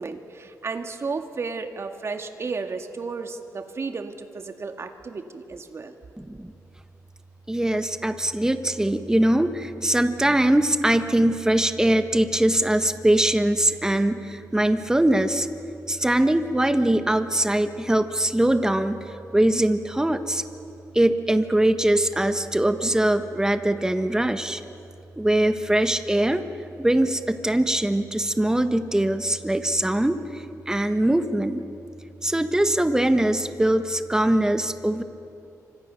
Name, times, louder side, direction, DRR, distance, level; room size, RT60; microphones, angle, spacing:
voice 1, 0.0-6.0, right 4 dB, 45° right, 6 dB, 2.0 m, -33 dB
voice 2, 6.2-6.5 7.5-15.5 15.9-20.4 20.9-24.6 25.2-26.4 26.8-31.6 32.2-35.0, right 1 dB, 10° right, 9 dB, 1.4 m, -22 dB
28.0 x 25.5 x 7.0 m, 2.7 s
cardioid pair, 95°, 6 cm